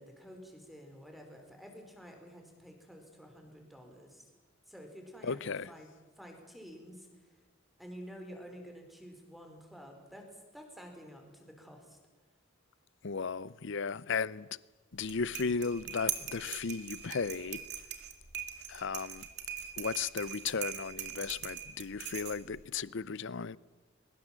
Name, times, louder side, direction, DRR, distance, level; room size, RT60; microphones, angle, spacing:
voice 1, 0.0-4.3 4.7-5.4 5.7-5.9 6.2-7.4 7.8-12.0, equal, ahead, 4.4 m, -50 dB
voice 2, 5.2-5.7 13.0-14.5 14.9-17.6 18.7-19.3 19.8-23.6, left 5 dB, 65° left, 0.6 m, -35 dB
sound 1, 14.9-22.7, right 10 dB, 55° right, 2.4 m, -41 dB
23.0 x 21.0 x 7.5 m
head